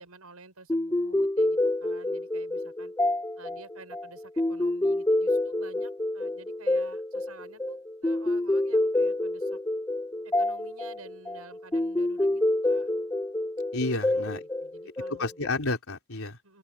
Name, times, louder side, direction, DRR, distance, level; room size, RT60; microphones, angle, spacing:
voice 1, 0.0-2.9 3.4-9.6 10.2-12.9 13.4-13.5 14.1-14.3 14.6-15.3 16.4-16.6, right 3 dB, 85° right, 7.3 m, -50 dB
sound 1, 0.7-15.5, left 1 dB, 10° left, 0.6 m, -28 dB
voice 2, 13.7-14.4 15.1-16.4, left 2 dB, 70° left, 4.3 m, -30 dB
open air
head